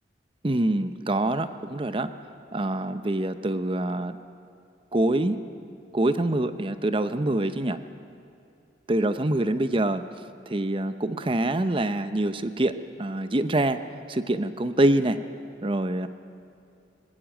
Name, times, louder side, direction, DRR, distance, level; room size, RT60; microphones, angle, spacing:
voice 1, 0.4-2.1 2.5-4.2 4.9-5.4 5.9-7.8 8.9-10.0 10.5-13.8 14.1-15.2 15.6-16.1, right 1 dB, 30° right, 11 dB, 0.7 m, -25 dB
20.0 x 16.0 x 9.2 m, 2.6 s
head